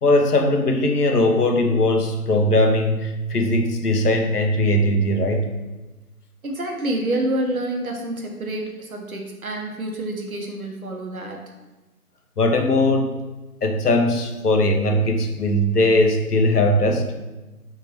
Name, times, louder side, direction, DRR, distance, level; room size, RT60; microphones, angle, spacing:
voice 1, 0.0-5.5 12.4-13.2 13.6-17.1, left 1 dB, 80° left, 4 dB, 0.7 m, -19 dB
voice 2, 6.4-11.4, right 1 dB, 65° right, 2 dB, 0.8 m, -27 dB
3.5 x 2.8 x 3.0 m, 1.1 s
figure-of-eight pair, 170°, 46 cm